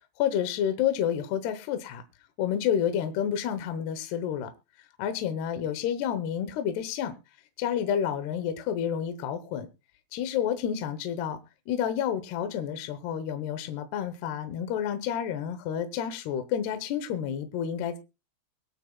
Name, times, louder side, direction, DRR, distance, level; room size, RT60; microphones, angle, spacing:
voice 1, 0.2-2.0 2.4-4.5 5.0-7.2 7.6-9.7 10.1-11.4 11.7-18.0, left 9 dB, 70° left, 9 dB, 2.7 m, -29 dB
23.5 x 9.0 x 2.3 m, 0.27 s
omnidirectional pair, 5.6 m